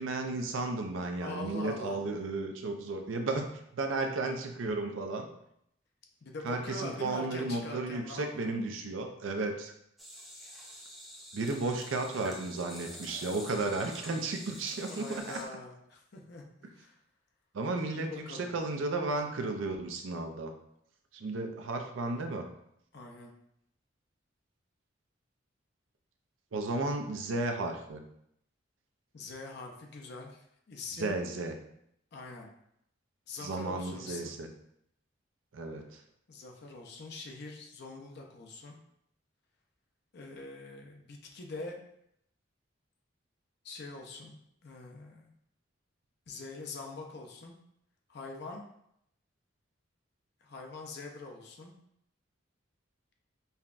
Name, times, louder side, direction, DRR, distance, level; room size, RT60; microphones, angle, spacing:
voice 1, 0.0-3.5 3.7-5.3 6.4-9.7 11.3-15.4 17.5-20.5 21.1-22.4 26.5-28.0 31.0-31.5 33.4-34.5 35.5-35.8, right 3 dB, 75° right, 5 dB, 0.5 m, -33 dB
voice 2, 1.1-2.0 6.2-8.6 11.6-11.8 14.8-16.4 16.7-17.0 17.9-18.5 22.9-23.3 29.1-31.2 32.1-32.5 33.3-34.4 36.3-38.8 40.1-41.8 43.6-45.3 46.3-47.5 48.1-48.6 50.4-51.7, left 3 dB, 55° left, 1 dB, 0.5 m, -44 dB
sound 1, 10.0-15.4, equal, ahead, 0.5 m, -48 dB
5.4 x 2.2 x 2.4 m, 0.75 s
head